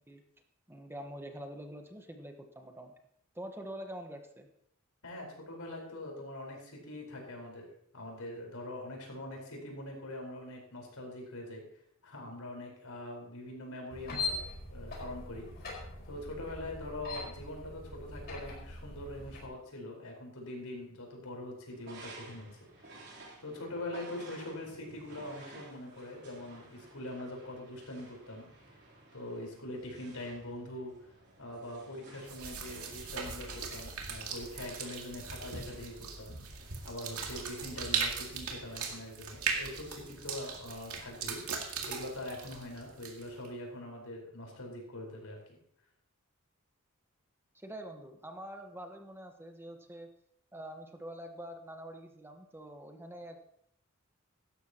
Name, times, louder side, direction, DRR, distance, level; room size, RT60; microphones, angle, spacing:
voice 1, 0.7-2.9 3.3-4.5 47.5-50.1 50.5-53.4, right 1 dB, 10° right, 4 dB, 1.2 m, -45 dB
voice 2, 5.0-7.7 7.9-11.6 12.0-14.4 14.7-15.5 16.1-22.5 22.8-23.0 23.4-28.5 29.1-31.0 31.4-36.3 36.8-45.6, left 1 dB, 85° left, 0 dB, 4.7 m, -43 dB
sound 1, 13.9-19.5, left 3 dB, 50° left, 4.7 m, -41 dB
sound 2, 21.7-37.9, right 2 dB, 50° right, 3.7 m, -55 dB
sound 3, 32.3-43.5, right 5 dB, 80° right, 2.2 m, -39 dB
16.5 x 13.0 x 3.0 m, 0.69 s
head